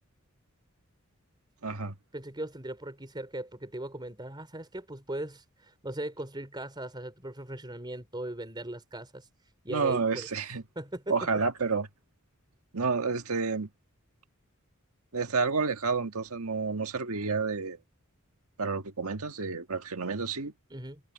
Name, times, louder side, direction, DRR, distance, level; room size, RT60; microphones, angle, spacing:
voice 1, 1.6-2.0 9.7-10.6 11.1-11.9 12.7-13.7 15.1-17.8 18.6-20.5, right 4 dB, 85° right, 1.6 m, -30 dB
voice 2, 2.1-9.3 9.6-10.3 10.8-11.2 20.7-21.0, right 1 dB, 20° right, 4.0 m, -39 dB
head